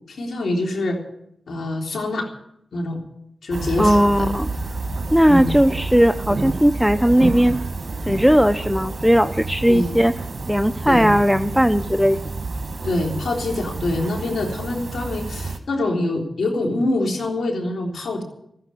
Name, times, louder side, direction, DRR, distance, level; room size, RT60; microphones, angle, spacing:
voice 1, 0.1-1.0 1.5-2.3 2.7-3.0 3.4-4.3 5.3-5.5 9.7-9.9 10.9-11.1 12.8-18.2, left 2 dB, 90° left, 2 dB, 3.5 m, -25 dB
sound 1, 3.5-15.6, right 3 dB, 55° right, 1.7 m, -29 dB
voice 2, 3.8-4.5 5.1-7.6 8.1-10.1 10.5-12.2, equal, ahead, 11 dB, 0.7 m, -17 dB
15.0 x 9.7 x 9.3 m, 0.75 s
cardioid pair, 45°, 0 cm